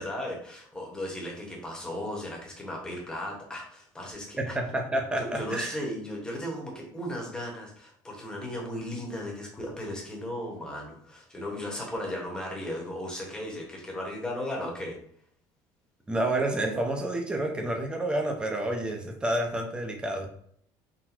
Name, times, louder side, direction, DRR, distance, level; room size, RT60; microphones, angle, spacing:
voice 1, 0.0-4.6 5.2-15.0, left 1 dB, 10° left, -1 dB, 1.1 m, -36 dB
voice 2, 4.4-5.9 16.1-20.3, right 1 dB, 10° right, 2 dB, 0.6 m, -29 dB
4.0 x 2.2 x 4.4 m, 0.63 s
cardioid pair, 155°, 10 cm